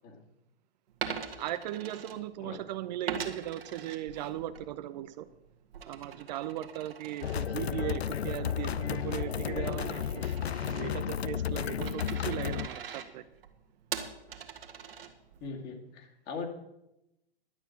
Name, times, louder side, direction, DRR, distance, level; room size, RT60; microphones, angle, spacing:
Coin (dropping), 0.9-2.6 3.1-4.6 5.0-15.5, right 7 dB, 65° right, 1.8 m, -42 dB
voice 1, 1.4-5.3 5.9-13.3, right 13 dB, 45° right, 13 dB, 0.6 m, -38 dB
sound 1, 7.2-12.7, left 9 dB, 85° left, 0.5 m, -33 dB
voice 2, 15.4-16.4, left 4 dB, 30° left, 1 dB, 2.4 m, -41 dB
11.5 x 9.0 x 6.0 m, 0.90 s
figure-of-eight pair, 110°, 31 cm